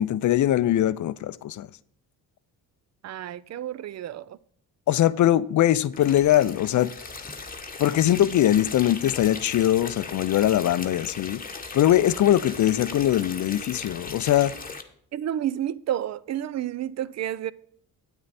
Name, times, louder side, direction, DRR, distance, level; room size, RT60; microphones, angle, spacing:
voice 1, 0.0-1.7 4.9-6.9 7.8-11.4 11.7-14.5, left 12 dB, 45° left, 0.5 m, -21 dB
voice 2, 3.0-4.4 15.1-17.5, right 11 dB, 40° right, 0.5 m, -30 dB
sound 1, 5.9-14.8, left 4 dB, 20° left, 1.1 m, -38 dB
9.5 x 8.1 x 4.1 m
supercardioid pair, 70°, 42 cm